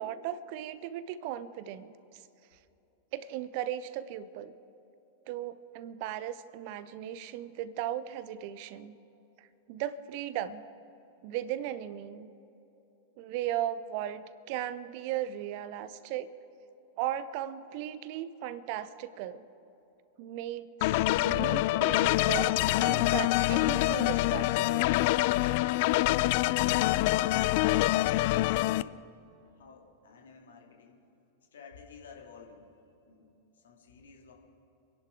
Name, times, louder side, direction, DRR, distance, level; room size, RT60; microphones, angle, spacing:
voice 1, 0.0-2.2 3.1-4.5 5.3-9.0 9.4-10.6 11.2-12.3 13.2-16.3 17.0-19.5 20.2-24.9, right 11 dB, 45° right, 16 dB, 0.6 m, -37 dB
sound 1, 20.8-28.8, left 17 dB, 50° left, 0.3 m, -26 dB
voice 2, 27.7-29.1 29.4-31.0 31.5-32.7 33.0-34.3, left 5 dB, 65° left, 1 dB, 2.2 m, -52 dB
27.5 x 11.0 x 3.7 m, 2.9 s
figure-of-eight pair, 90°, 0 cm